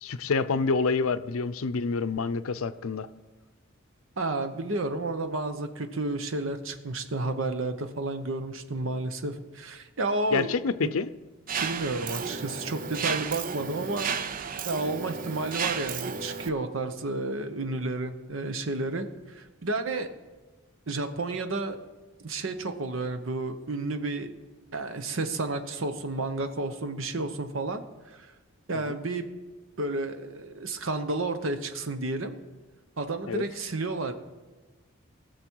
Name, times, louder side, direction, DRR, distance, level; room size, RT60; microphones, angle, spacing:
voice 1, 0.0-3.1 10.3-11.1 28.7-29.0 33.3-33.4, left 4 dB, 85° left, 13 dB, 0.5 m, -27 dB
voice 2, 4.2-10.5 10.8-10.9 11.6-14.1 14.6-20.1 20.9-21.8 22.2-24.3 24.7-28.3 28.7-29.2 29.8-32.4 33.0-34.1, right 2 dB, 75° right, 8 dB, 0.9 m, -31 dB
Mechanisms, 11.5-16.5, right 6 dB, 40° right, 0.5 m, -33 dB
19.5 x 6.9 x 4.6 m, 1.2 s
head